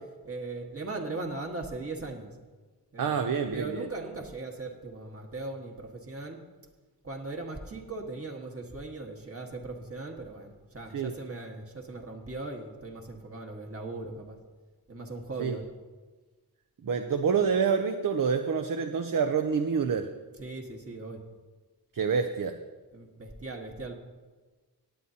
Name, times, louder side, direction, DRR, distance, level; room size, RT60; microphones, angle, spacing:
voice 1, 0.2-2.3 2.9-3.2 3.5-6.4 7.0-14.4 14.9-15.7 20.4-21.2 22.9-23.9, right 3 dB, 35° right, 2 dB, 1.5 m, -39 dB
voice 2, 3.0-3.9 10.9-11.1 15.4-15.6 16.8-20.1 21.9-22.6, right 6 dB, 55° right, 7 dB, 0.6 m, -27 dB
18.0 x 9.3 x 2.8 m, 1.3 s
wide cardioid pair, 65°, 39 cm